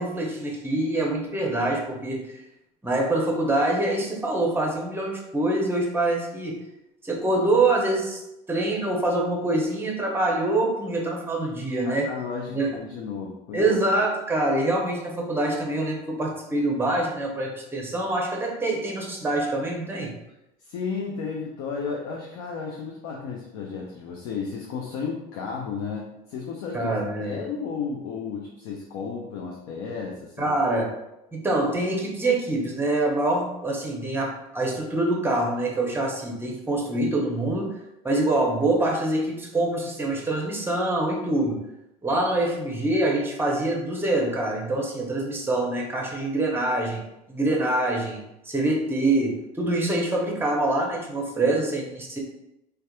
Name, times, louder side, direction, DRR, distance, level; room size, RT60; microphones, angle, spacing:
voice 1, 0.0-2.4 2.8-6.6 7.0-8.2 8.5-12.1 12.5-12.7 13.5-20.1 26.7-27.4 30.4-30.9 31.3-37.8 38.0-41.6 42.0-47.0 47.3-52.2, right 2 dB, 10° right, 0 dB, 0.6 m, -25 dB
voice 2, 11.8-13.7 20.6-26.9 27.2-30.5, left 5 dB, 75° left, 0 dB, 0.4 m, -33 dB
2.7 x 2.2 x 2.2 m, 0.86 s
hypercardioid pair, 75°, 21 cm